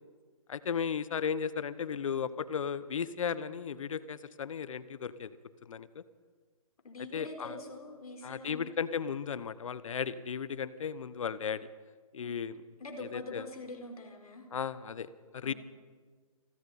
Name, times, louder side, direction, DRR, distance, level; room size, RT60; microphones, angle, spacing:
voice 1, 0.5-5.4 5.6-6.0 7.1-7.6 8.2-11.7 12.1-12.6 13.0-13.4 14.5-15.5, left 7 dB, 60° left, 16 dB, 1.1 m, -35 dB
voice 2, 6.8-8.7 12.2-12.3 12.8-14.5 15.4-15.5, left 2 dB, 75° left, 4 dB, 4.3 m, -44 dB
29.5 x 21.0 x 4.3 m, 1.5 s
figure-of-eight pair, 140°, 19 cm